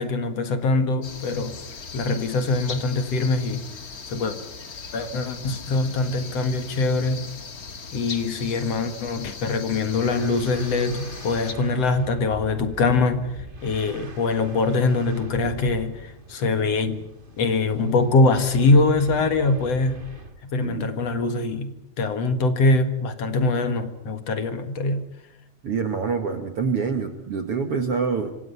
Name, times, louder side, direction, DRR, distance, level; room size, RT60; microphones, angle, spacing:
voice 1, 0.0-1.6 1.9-3.7 4.1-4.4 4.9-7.3 7.9-13.3 13.6-17.1 17.4-20.0 20.4-25.1, left 3 dB, 55° left, 2.6 m, -23 dB
sound 1, 1.0-11.5, left 4 dB, 35° left, 1.6 m, -39 dB
sound 2, 9.9-20.4, right 2 dB, 30° right, 1.0 m, -42 dB
voice 2, 20.6-20.9 25.6-28.3, right 5 dB, 50° right, 2.2 m, -26 dB
26.0 x 25.5 x 5.7 m
omnidirectional pair, 3.8 m